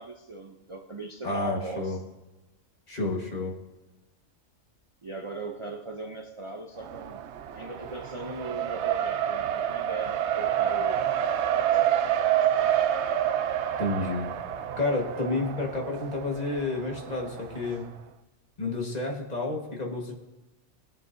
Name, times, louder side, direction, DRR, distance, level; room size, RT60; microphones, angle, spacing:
voice 1, 0.0-2.0 5.0-7.2 7.5-11.0 11.5-12.8, right 2 dB, 35° right, 0.5 m, -39 dB
voice 2, 1.2-2.0 2.9-3.5 13.8-14.3 14.8-17.8 18.6-20.2, left 2 dB, 30° left, 1.6 m, -30 dB
Race car auto racing, 6.8-17.8, right 10 dB, 65° right, 0.8 m, -28 dB
18.0 x 7.4 x 2.7 m
omnidirectional pair, 1.4 m